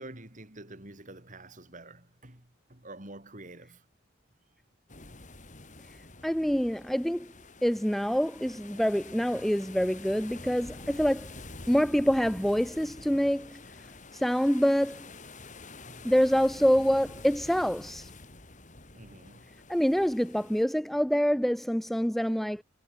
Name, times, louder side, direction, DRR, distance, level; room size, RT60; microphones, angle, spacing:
voice 1, 0.0-3.8 15.9-16.1 18.9-19.4, right 2 dB, 40° right, 4.7 m, -47 dB
sound 1, 4.9-20.6, left 3 dB, 40° left, 3.4 m, -48 dB
voice 2, 6.2-7.3 7.6-11.3 11.7-13.6 14.1-15.1 16.0-18.1 19.7-22.6, equal, ahead, 0.4 m, -26 dB
head